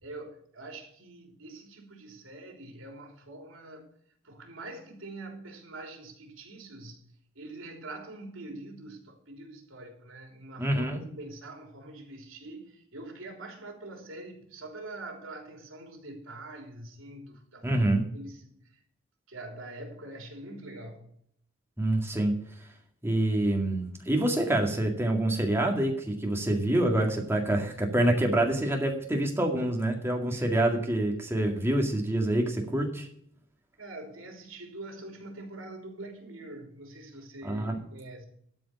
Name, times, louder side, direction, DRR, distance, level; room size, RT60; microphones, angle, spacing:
voice 1, 0.0-3.9 4.2-7.0 7.3-18.8 19.3-21.1 30.3-30.5 33.8-38.3, right 2 dB, 85° right, 3.3 m, -44 dB
voice 2, 10.6-11.0 17.6-18.0 21.8-22.4 23.0-33.1 37.4-37.8, right 1 dB, 10° right, 2.0 m, -26 dB
12.5 x 5.0 x 8.2 m
head